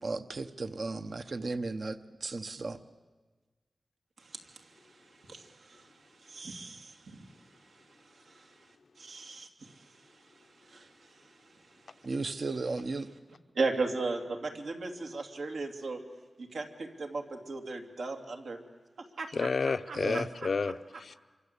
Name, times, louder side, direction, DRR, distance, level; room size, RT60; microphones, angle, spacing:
voice 1, 0.0-2.8 12.0-13.1 19.9-20.3, right 3 dB, 55° right, 9 dB, 0.9 m, -35 dB
voice 2, 4.2-8.7 9.0-12.1 13.5-16.0 16.4-18.6 19.0-19.6 19.9-20.2, right 3 dB, 85° right, 3 dB, 2.9 m, -38 dB
voice 3, 19.3-21.2, left 4 dB, 65° left, 12 dB, 0.8 m, -31 dB
27.5 x 24.5 x 8.3 m, 1.3 s
wide cardioid pair, 105°, 0 cm